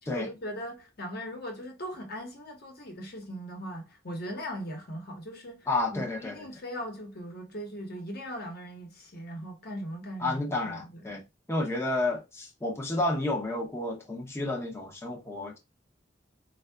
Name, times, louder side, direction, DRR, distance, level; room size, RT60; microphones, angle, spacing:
voice 1, 0.0-11.2, equal, 55° left, 1.0 m, -39 dB
voice 2, 5.7-6.4 10.2-11.2 11.5-15.6, left 2 dB, 15° left, 0.5 m, -31 dB
4.5 x 2.3 x 2.2 m
head